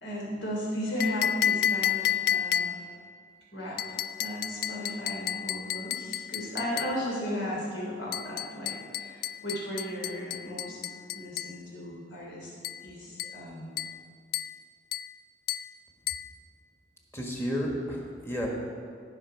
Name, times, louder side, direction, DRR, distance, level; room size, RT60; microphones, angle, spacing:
voice 1, 0.0-2.8 3.5-12.5 12.8-13.7, equal, 75° left, -3 dB, 3.3 m, -35 dB
sound 1, 1.0-3.0 3.8-7.0 8.1-11.6 12.6-12.9 13.2-13.4 13.8-14.0 14.3-14.6 14.9-15.1 15.5-15.7 16.1-16.3, left 10 dB, 55° left, 0.3 m, -31 dB
voice 2, 17.1-18.5, equal, 15° left, -1 dB, 1.5 m, -32 dB
18.0 x 6.0 x 4.7 m, 2.2 s
head